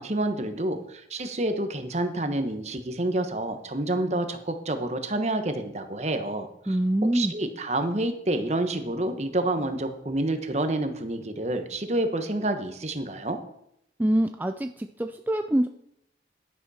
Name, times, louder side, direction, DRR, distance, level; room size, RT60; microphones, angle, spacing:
voice 1, 0.0-6.7 7.1-13.4, right 1 dB, 40° right, 8 dB, 1.2 m, -28 dB
voice 2, 6.7-7.3 14.0-15.7, right 1 dB, 10° right, 6 dB, 0.4 m, -25 dB
11.0 x 10.5 x 4.3 m, 0.76 s
head